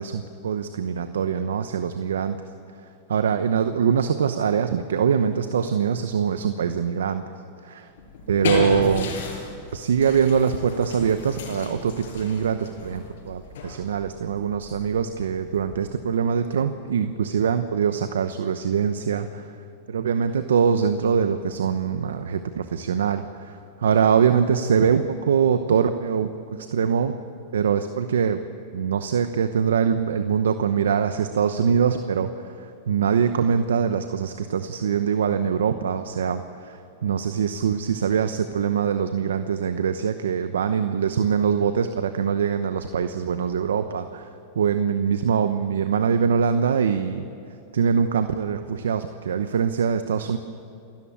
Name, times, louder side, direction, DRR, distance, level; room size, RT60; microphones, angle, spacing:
voice 1, 0.0-2.4 3.1-7.2 7.6-7.9 8.3-9.1 9.7-19.5 19.9-27.2 27.5-28.4 28.7-44.3 44.5-47.3 47.7-50.4, right 7 dB, 90° right, 9 dB, 0.9 m, -23 dB
sound 1, 8.0-16.1, left 4 dB, 80° left, 6.3 m, -34 dB
29.0 x 13.5 x 8.8 m, 2.6 s
hypercardioid pair, 120°, 0 cm